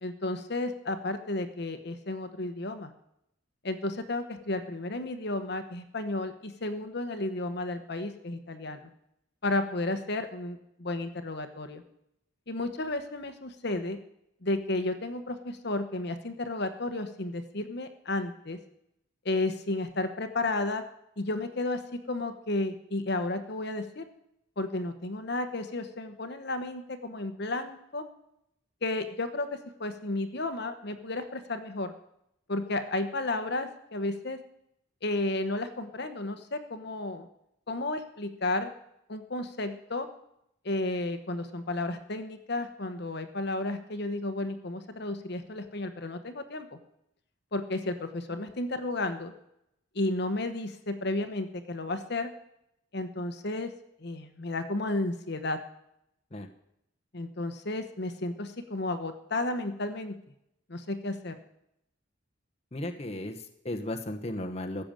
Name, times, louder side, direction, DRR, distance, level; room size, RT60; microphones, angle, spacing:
voice 1, 0.0-2.9 3.6-8.8 9.4-11.8 12.5-14.0 14.4-18.6 19.2-20.8 21.2-21.8 22.1-24.0 24.6-28.0 28.8-31.9 32.5-34.4 35.0-37.3 37.7-38.7 39.1-40.1 40.6-46.8 47.5-49.3 49.9-52.3 52.9-53.7 54.0-55.6 57.1-60.1 60.7-61.3, left 2 dB, 55° left, 8 dB, 1.1 m, -32 dB
voice 2, 62.7-64.8, left 1 dB, 30° left, 3 dB, 1.1 m, -35 dB
15.5 x 6.9 x 9.0 m, 0.78 s
head